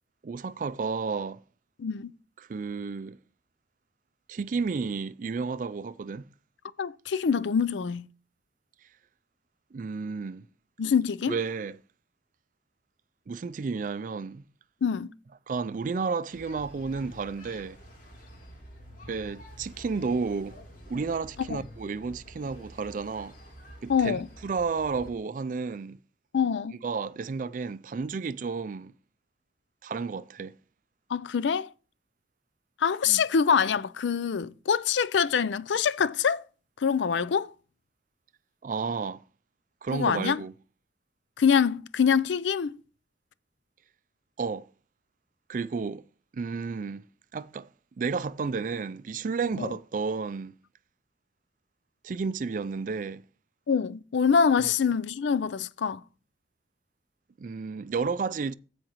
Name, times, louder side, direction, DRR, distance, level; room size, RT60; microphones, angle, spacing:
voice 1, 0.2-1.4 2.5-3.2 4.3-6.2 9.7-10.4 11.3-11.8 13.3-14.4 15.5-17.8 19.1-20.6 20.9-23.3 23.8-26.0 26.8-28.9 29.8-30.5 33.1-33.2 38.6-39.2 39.8-40.5 44.4-44.7 45.5-46.0 46.3-47.0 47.3-47.7 48.0-50.6 52.0-53.2 54.6-54.7 57.4-58.5, right 4 dB, 45° right, 0.3 m, -32 dB
voice 2, 1.8-2.1 6.8-8.1 10.8-11.4 14.8-15.1 21.5-21.6 23.9-24.3 26.3-26.7 31.1-31.7 32.8-36.4 36.8-37.5 39.9-40.4 41.4-42.8 49.6-49.7 53.7-56.0, left 6 dB, 75° left, 0.4 m, -25 dB
sound 1, 16.3-25.1, equal, 45° left, 3.3 m, -48 dB
15.0 x 5.0 x 3.0 m
head